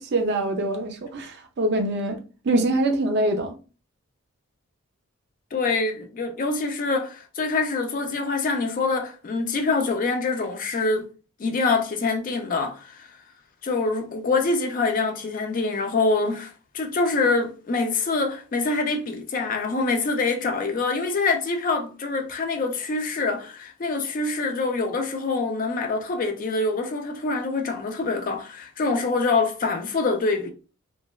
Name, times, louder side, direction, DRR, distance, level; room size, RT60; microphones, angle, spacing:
voice 1, 0.0-2.2 2.4-3.5, right 1 dB, 50° right, 0.4 m, -24 dB
voice 2, 5.5-11.1 11.4-13.1 13.6-16.5 16.7-30.5, left 3 dB, 40° left, 0.4 m, -25 dB
3.1 x 2.2 x 2.3 m
head